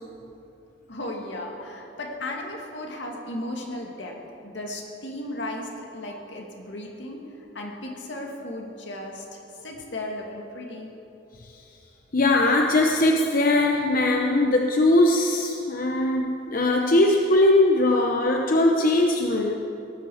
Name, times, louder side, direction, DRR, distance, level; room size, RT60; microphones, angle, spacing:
voice 1, 0.9-4.2 4.4-7.2 7.5-10.9, left 1 dB, 75° left, 0 dB, 2.3 m, -35 dB
voice 2, 12.1-19.5, left 2 dB, 50° left, 2 dB, 0.8 m, -20 dB
18.0 x 8.8 x 7.1 m, 2.8 s
head